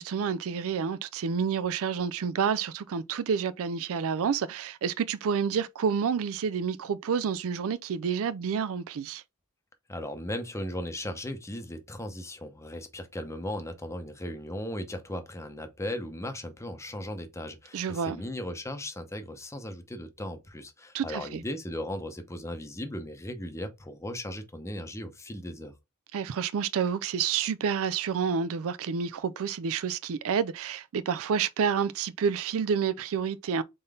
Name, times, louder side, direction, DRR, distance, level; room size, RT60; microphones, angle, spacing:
voice 1, 0.0-9.2 17.7-18.2 20.9-21.4 26.1-33.6, right 6 dB, 65° right, 0.4 m, -29 dB
voice 2, 9.9-25.7, left 1 dB, 15° left, 0.8 m, -37 dB
3.9 x 3.8 x 3.5 m
head